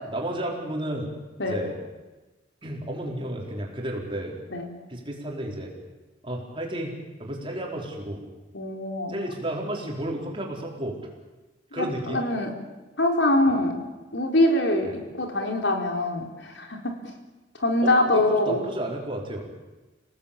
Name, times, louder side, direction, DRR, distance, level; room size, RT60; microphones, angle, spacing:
voice 1, 0.1-1.1 1.5-1.7 2.6-4.4 4.9-5.7 6.2-6.9 7.2-8.2 9.1-11.0 11.7-12.2 13.5-13.6 14.8-14.9 17.8-19.5, right 1 dB, 30° right, -1 dB, 4.8 m, -32 dB
voice 2, 8.5-9.1 11.7-12.5 13.0-13.8 14.1-16.9 17.6-18.6, left 1 dB, 70° left, 3 dB, 4.2 m, -24 dB
29.5 x 18.5 x 8.8 m, 1.2 s
head